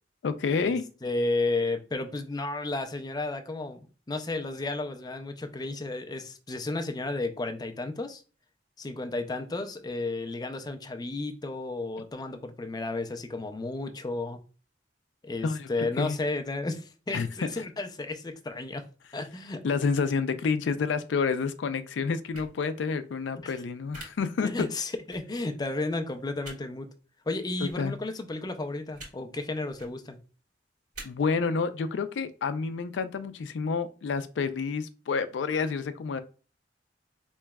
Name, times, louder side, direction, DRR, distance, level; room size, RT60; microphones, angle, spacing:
voice 1, 0.2-0.8 15.4-16.2 17.1-17.3 19.6-24.5 27.6-27.9 31.0-36.2, left 5 dB, 85° left, 11 dB, 0.4 m, -29 dB
voice 2, 1.0-3.8 4.1-8.2 8.8-14.4 15.2-18.8 19.1-19.6 23.4-23.6 24.4-26.9 27.3-30.2, left 2 dB, 25° left, 7 dB, 0.4 m, -33 dB
sound 1, 22.3-22.5 23.9-24.0 25.1-25.2 26.4-26.6 27.6-27.7 28.9-29.1 29.7-29.9 30.9-31.0, right 2 dB, 50° right, 1.5 m, -43 dB
4.6 x 3.0 x 2.2 m, 0.35 s
head